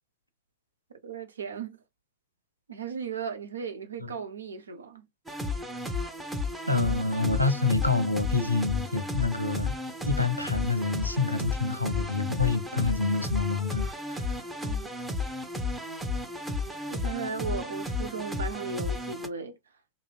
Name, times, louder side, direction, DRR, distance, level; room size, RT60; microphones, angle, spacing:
voice 1, 1.0-1.8 2.7-5.0 14.6-14.9 16.9-19.6, right 6 dB, 70° right, 0.6 m, -36 dB
sound 1, 5.3-19.3, left 2 dB, 10° right, 0.7 m, -33 dB
voice 2, 6.7-9.8 10.0-14.4, left 4 dB, 90° left, 0.5 m, -27 dB
2.9 x 2.6 x 2.4 m
figure-of-eight pair, 90°, 0 cm